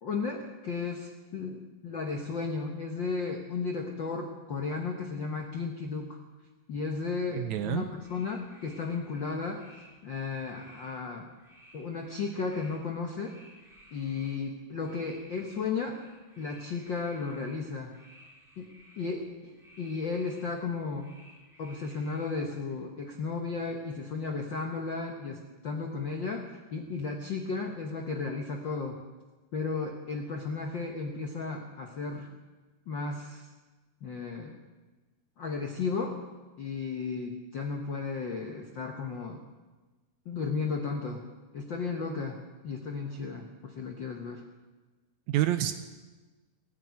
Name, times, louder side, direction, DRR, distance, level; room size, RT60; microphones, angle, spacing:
voice 1, 0.0-6.2 6.7-9.6 10.0-11.3 11.7-13.4 13.9-16.0 16.4-17.9 18.6-18.7 19.0-21.1 21.6-29.0 29.5-32.3 32.9-33.5 34.0-34.6 35.4-36.2 36.6-39.4 40.2-41.2 41.5-42.4 42.6-44.4, left 4 dB, 75° left, 2 dB, 1.0 m, -34 dB
voice 2, 7.3-7.9 45.3-45.7, right 13 dB, 80° right, 10 dB, 1.7 m, -28 dB
sound 1, 7.9-22.7, equal, ahead, 3.5 m, -57 dB
18.0 x 7.5 x 9.4 m, 1.2 s
omnidirectional pair, 3.9 m